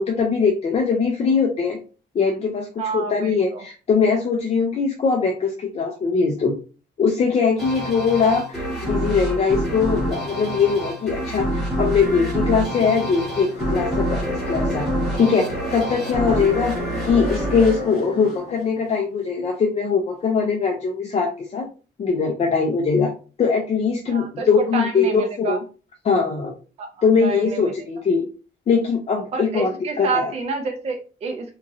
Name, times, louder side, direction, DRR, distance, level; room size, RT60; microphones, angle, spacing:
voice 1, 0.0-1.8 2.1-6.6 7.0-14.9 15.1-16.7 17.0-21.7 22.0-23.1 23.4-25.6 26.0-26.5 27.0-28.2 28.7-30.3, left 5 dB, 35° left, 2 dB, 0.4 m, -21 dB
voice 2, 2.8-3.6 16.2-16.5 24.1-25.6 26.8-27.7 29.3-31.5, right 4 dB, 35° right, 4 dB, 0.4 m, -29 dB
sound 1, 7.6-18.8, right 1 dB, ahead, 1.1 m, -27 dB
sound 2, 13.3-18.6, left 2 dB, 60° left, 1.3 m, -33 dB
3.0 x 2.4 x 2.5 m, 0.35 s
wide cardioid pair, 175°, 19 cm